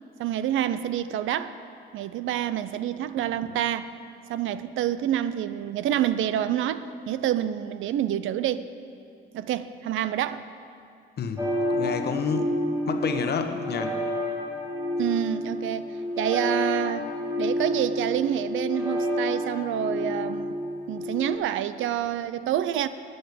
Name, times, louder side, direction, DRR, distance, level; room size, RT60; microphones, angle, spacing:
voice 1, 0.2-1.6 1.9-3.9 4.3-8.7 9.3-10.5 15.0-17.1 17.4-20.5 20.9-22.9, right 11 dB, 80° right, 13 dB, 0.5 m, -27 dB
sound 1, 11.4-21.4, left 1 dB, 15° right, 2.2 m, -29 dB
voice 2, 11.7-14.0, left 6 dB, 55° left, 7 dB, 1.1 m, -29 dB
12.0 x 8.0 x 8.4 m, 2.5 s
cardioid pair, 90°, 20 cm